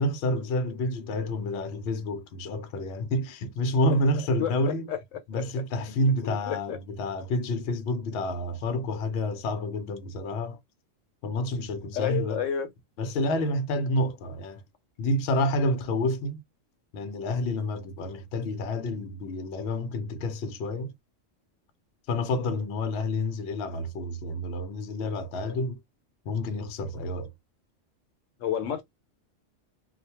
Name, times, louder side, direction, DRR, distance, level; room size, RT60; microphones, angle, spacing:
voice 1, 0.0-4.9 5.3-10.6 11.2-12.4 13.0-14.6 15.0-16.4 16.9-20.9 22.1-25.8 26.2-27.3, left 1 dB, 65° left, 0.8 m, -29 dB
voice 2, 6.2-6.8 11.9-12.7 28.4-28.8, left 9 dB, 85° left, 1.0 m, -29 dB
2.3 x 2.2 x 2.9 m
omnidirectional pair, 1.3 m